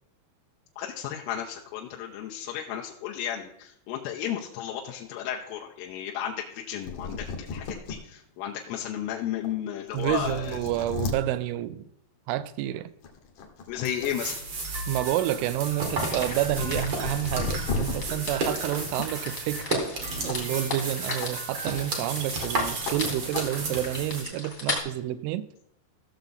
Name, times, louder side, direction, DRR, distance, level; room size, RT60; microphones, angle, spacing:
voice 1, 0.8-10.6 13.7-14.4, left 10 dB, 90° left, 0 dB, 3.4 m, -33 dB
sound 1, 6.6-6.7 6.8-8.0 8.5-8.6 9.4-9.5 9.9-11.2 12.4-12.6 13.0-14.1 14.4-17.9 20.2-20.4 20.7-20.8 21.2-21.3 22.4-22.5 22.8-23.0 23.3-23.5, left 4 dB, 70° left, 1.9 m, -35 dB
voice 2, 9.9-11.8 12.3-12.9 14.9-19.8 20.2-25.5, right 13 dB, 85° right, 14 dB, 2.9 m, -29 dB
sound 2, 13.8-24.2, right 3 dB, 65° right, 1.4 m, -33 dB
sound 3, 15.9-24.8, left 3 dB, 40° left, 1.2 m, -38 dB
15.0 x 6.9 x 3.9 m, 0.76 s
omnidirectional pair, 5.7 m